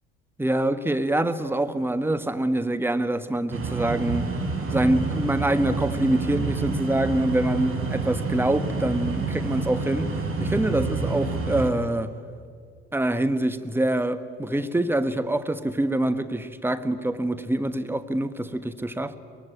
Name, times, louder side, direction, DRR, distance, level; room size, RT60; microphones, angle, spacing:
voice 1, 0.4-4.3 4.7-12.1 12.9-19.2, right 1 dB, 5° right, 1.3 m, -25 dB
sound 1, 3.5-11.7, right 3 dB, 40° right, 4.8 m, -28 dB
23.5 x 21.5 x 9.2 m
figure-of-eight pair, 55°, 33 cm